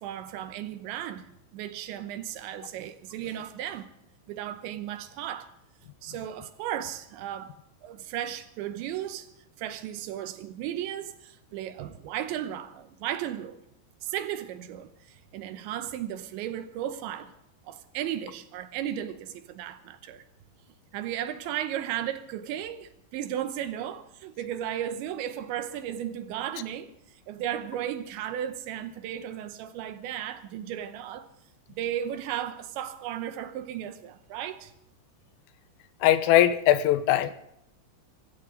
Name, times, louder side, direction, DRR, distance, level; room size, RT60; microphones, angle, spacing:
voice 1, 0.0-3.9 4.3-5.5 6.0-7.5 7.8-9.3 9.6-13.6 14.0-17.3 17.6-20.2 20.9-26.9 27.3-31.3 31.8-34.7, right 11 dB, 75° right, 3.0 m, -35 dB
voice 2, 36.0-37.3, left 12 dB, 90° left, 3.6 m, -20 dB
25.5 x 14.5 x 3.8 m
omnidirectional pair, 5.7 m